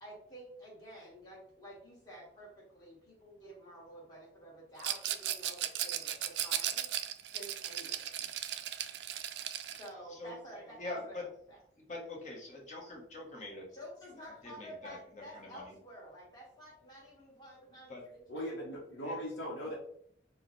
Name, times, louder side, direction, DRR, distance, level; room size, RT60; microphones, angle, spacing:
voice 1, 0.0-6.9 7.3-8.3 9.7-11.6 12.8-12.9 13.7-18.4, equal, 20° left, -5 dB, 1.4 m, -51 dB
Rattle, 4.8-9.9, right 11 dB, 70° right, 0.3 m, -36 dB
voice 2, 10.8-11.2 11.8-13.7 14.4-15.8 17.9-18.0 19.0-19.2 19.6-19.7, left 2 dB, 40° left, -1 dB, 0.9 m, -44 dB
voice 3, 18.3-19.7, equal, 80° left, -5 dB, 0.8 m, -39 dB
4.6 x 2.1 x 3.0 m, 0.66 s
head